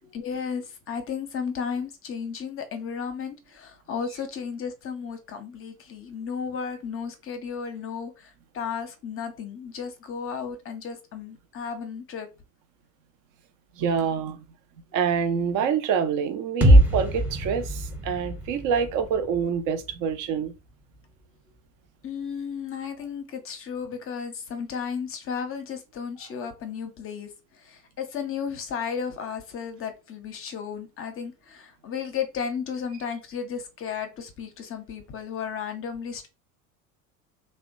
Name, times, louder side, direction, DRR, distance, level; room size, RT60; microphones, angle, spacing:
voice 1, 0.0-12.3 22.0-36.3, left 6 dB, 30° left, 0.7 m, -34 dB
voice 2, 13.8-14.4 14.9-20.5, right 7 dB, 45° right, 0.6 m, -26 dB
sound 1, 16.6-20.5, right 1 dB, 5° right, 0.7 m, -22 dB
2.8 x 2.2 x 2.5 m
hypercardioid pair, 75°, 44 cm